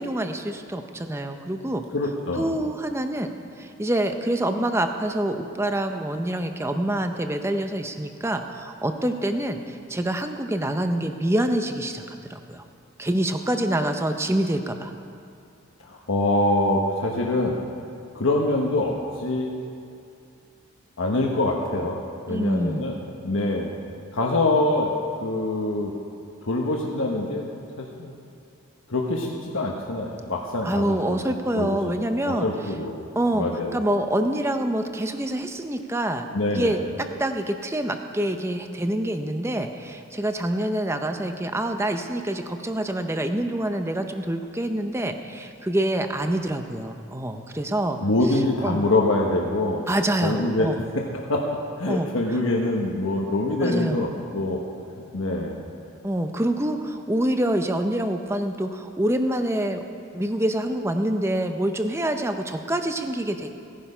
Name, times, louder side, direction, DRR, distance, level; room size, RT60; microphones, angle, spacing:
voice 1, 0.0-1.8 2.3-3.3 3.6-12.0 12.3-12.6 13.0-14.9 22.3-22.9 30.6-32.5 33.2-33.5 33.7-36.8 37.2-48.0 48.6-48.8 49.9-50.8 51.9-52.1 53.6-54.1 56.0-59.8 60.1-63.5, right 1 dB, 10° right, 6 dB, 0.6 m, -26 dB
voice 2, 1.9-2.5 15.8-17.6 18.1-19.5 21.0-22.0 22.3-23.0 23.2-23.7 24.1-24.9 25.2-25.9 26.4-27.4 27.8-28.1 28.9-31.2 31.5-31.9 32.2-33.0 33.3-33.7 36.3-36.8 48.0-49.9 50.2-50.7 50.9-51.5 51.8-54.6 55.1-55.6, left 2 dB, 70° left, -1 dB, 1.2 m, -24 dB
17.0 x 10.0 x 5.5 m, 2.5 s
head